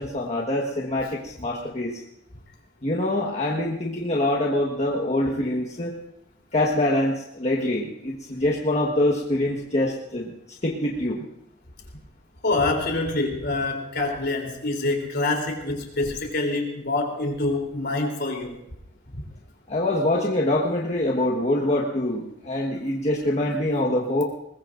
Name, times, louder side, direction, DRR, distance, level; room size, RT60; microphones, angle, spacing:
voice 1, 0.0-2.0 2.8-5.9 6.5-10.3 10.6-11.2 19.7-24.2, left 1 dB, 35° left, -2 dB, 1.5 m, -24 dB
voice 2, 12.4-18.6 19.1-19.2, left 2 dB, 60° left, 1 dB, 3.5 m, -26 dB
21.5 x 21.0 x 2.6 m, 0.79 s
head